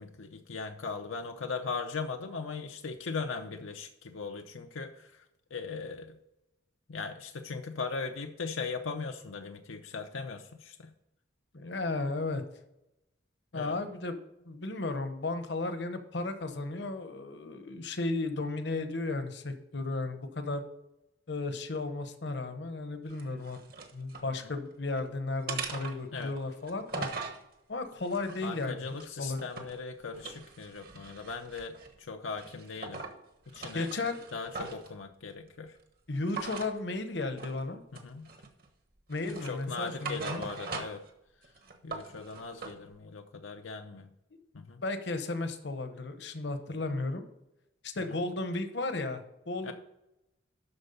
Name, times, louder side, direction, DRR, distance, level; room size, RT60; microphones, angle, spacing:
voice 1, 0.0-5.2 5.5-6.1 6.9-10.9 13.5-13.8 26.1-26.3 28.4-31.7 32.1-33.0 33.5-33.9 34.3-35.8 37.9-38.3 39.4-41.0 41.8-44.1 44.5-44.8 48.0-48.1 49.6-49.7, left 4 dB, 85° left, 4 dB, 0.7 m, -39 dB
voice 2, 11.5-12.4 13.5-14.2 14.4-20.6 21.3-23.6 23.9-27.1 27.7-29.4 33.7-34.2 36.1-37.8 39.1-40.5 44.8-47.3 47.8-49.7, left 2 dB, 60° left, 8 dB, 0.9 m, -34 dB
sound 1, 23.1-24.3 24.7-25.1 25.5-27.4 28.0-29.8 30.1-32.0 32.4-33.2 33.5-34.9 36.3-36.7 37.4-37.6 37.9-38.7 39.1-41.1 41.4-42.8, right 4 dB, 50° right, 1.2 m, -41 dB
12.5 x 4.5 x 5.4 m, 0.88 s
head